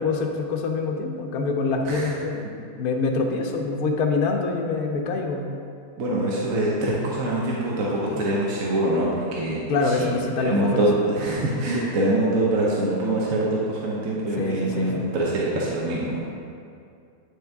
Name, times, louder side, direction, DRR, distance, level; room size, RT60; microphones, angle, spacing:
voice 1, 0.0-2.5 2.8-5.5 9.7-10.9 11.4-11.9 14.4-14.9, left 3 dB, 75° left, 2 dB, 1.2 m, -25 dB
voice 2, 6.0-9.6 9.8-10.1 10.4-16.2, right 1 dB, 60° right, -5 dB, 1.2 m, -24 dB
9.6 x 4.3 x 3.5 m, 2.4 s
omnidirectional pair, 1.6 m